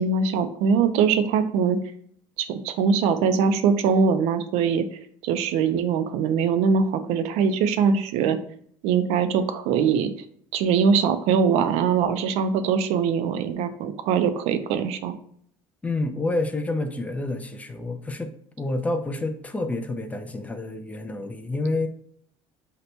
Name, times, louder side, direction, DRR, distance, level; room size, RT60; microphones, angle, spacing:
voice 1, 0.0-1.8 2.4-4.8 5.2-8.4 8.8-10.1 10.5-15.2, right 6 dB, 75° right, 11 dB, 0.4 m, -22 dB
voice 2, 15.8-21.9, left 2 dB, 15° left, 7 dB, 0.3 m, -28 dB
2.8 x 2.1 x 4.1 m, 0.64 s
cardioid pair, 115°, 11 cm